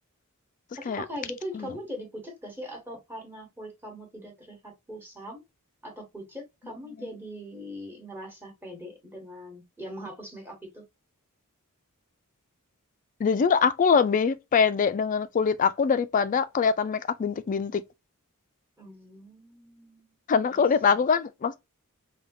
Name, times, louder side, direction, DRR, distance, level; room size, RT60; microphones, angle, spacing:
voice 1, 0.8-5.4 5.8-10.9 18.8-20.1 20.5-21.0, equal, 10° right, 1.1 m, -41 dB
voice 2, 13.2-17.8 20.3-21.6, left 6 dB, 35° left, 0.3 m, -23 dB
3.4 x 2.3 x 2.6 m
head